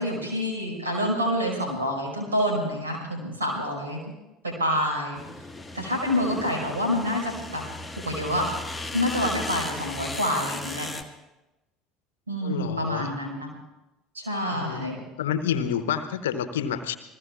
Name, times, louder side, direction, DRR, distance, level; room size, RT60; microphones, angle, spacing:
voice 1, 0.0-4.0 4.4-5.2 5.7-7.6 8.0-8.5 8.9-10.9 12.3-13.5 14.1-15.0, equal, 80° right, 1 dB, 5.1 m, -27 dB
sound 1, 5.2-11.0, left 2 dB, 5° left, 1.5 m, -36 dB
voice 2, 12.4-13.1 14.5-14.9 15.2-17.0, left 8 dB, 70° left, 11 dB, 0.9 m, -28 dB
28.5 x 20.5 x 2.5 m, 1.0 s
figure-of-eight pair, 60°, 0 cm